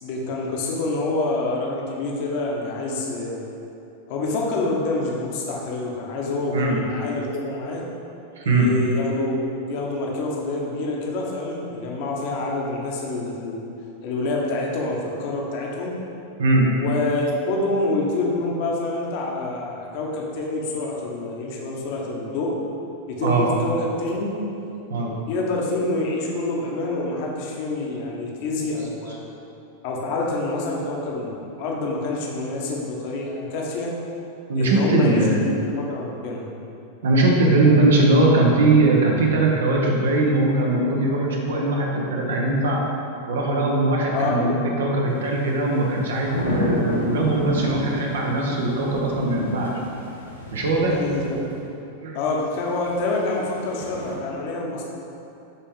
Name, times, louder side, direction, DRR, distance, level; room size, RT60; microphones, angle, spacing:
voice 1, 0.0-3.4 4.1-7.8 8.5-13.6 14.0-15.9 16.7-22.5 23.1-24.3 25.3-29.2 29.8-33.9 34.6-36.5 44.1-44.5 50.9-51.4 52.1-54.9, left 2 dB, 50° left, -1 dB, 1.3 m, -27 dB
voice 2, 6.5-6.8 8.4-8.7 16.4-16.7 23.2-23.5 24.9-25.1 34.5-35.4 37.0-42.8 43.3-49.7 50.5-51.0 52.0-52.2, right 2 dB, 60° right, -1 dB, 1.3 m, -20 dB
sound 1, 45.3-51.5 52.6-54.2, left 1 dB, 85° left, 1.2 m, -31 dB
11.0 x 4.4 x 3.8 m, 2.8 s
figure-of-eight pair, 90°, 0 cm